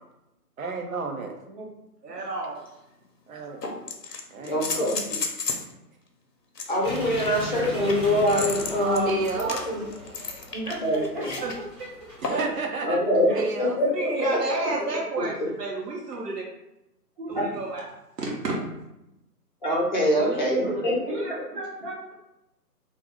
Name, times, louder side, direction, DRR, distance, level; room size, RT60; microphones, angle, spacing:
voice 1, 0.6-1.3 3.3-3.6 4.3-5.0 9.1-9.5 12.2-13.0 13.3-13.8, right 3 dB, 60° right, 3 dB, 0.7 m, -31 dB
voice 2, 1.2-1.7 2.1-2.2 10.5-11.3 12.0-12.4 13.0-13.2 17.2-17.4 20.2-22.1, right 2 dB, 35° right, -4 dB, 1.0 m, -33 dB
voice 3, 2.0-2.5 8.8-9.6 11.4-11.5 12.3-12.4 13.3-13.5 13.9-16.4 17.3-17.9 18.2-18.6, right 3 dB, 80° right, -3 dB, 1.0 m, -30 dB
sound 1, 2.6-2.7 3.6-5.7 6.5-11.6 12.2-12.6 14.2-14.3, left 4 dB, 85° left, 0.7 m, -33 dB
voice 4, 4.4-5.0 6.7-9.2 9.7-9.8 10.8-11.3 12.8-13.3 13.8-14.9 15.4-15.5 17.3-17.4 19.6-20.9, equal, 30° left, -3 dB, 0.6 m, -24 dB
sound 2, 6.8-12.5, right 1 dB, 20° right, 0.6 m, -38 dB
2.4 x 2.3 x 3.5 m, 0.89 s
figure-of-eight pair, 145°, 48 cm